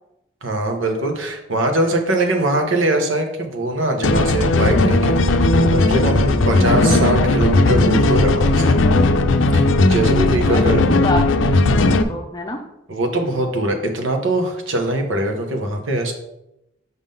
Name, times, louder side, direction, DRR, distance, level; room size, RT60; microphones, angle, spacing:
voice 1, 0.4-8.8 9.5-10.8 12.9-16.1, right 1 dB, 85° right, 3 dB, 1.1 m, -22 dB
sound 1, 4.0-12.0, left 2 dB, 85° left, 0.5 m, -16 dB
voice 2, 10.4-12.6, left 2 dB, 20° left, 4 dB, 0.6 m, -28 dB
5.8 x 3.8 x 5.4 m, 0.87 s
head